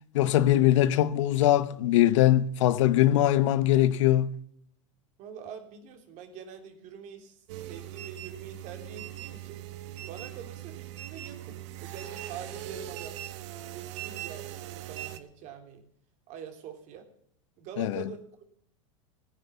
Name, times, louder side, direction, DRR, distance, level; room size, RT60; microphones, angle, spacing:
voice 1, 0.1-4.3 17.8-18.0, left 13 dB, 70° left, 0.9 m, -22 dB
voice 2, 5.2-9.6 10.1-13.2 13.7-15.8 16.3-17.1 17.6-18.5, right 7 dB, 50° right, 3.2 m, -45 dB
sound 1, 7.5-15.2, right 13 dB, 65° right, 1.4 m, -40 dB
15.5 x 9.8 x 7.0 m
hypercardioid pair, 105°, 16 cm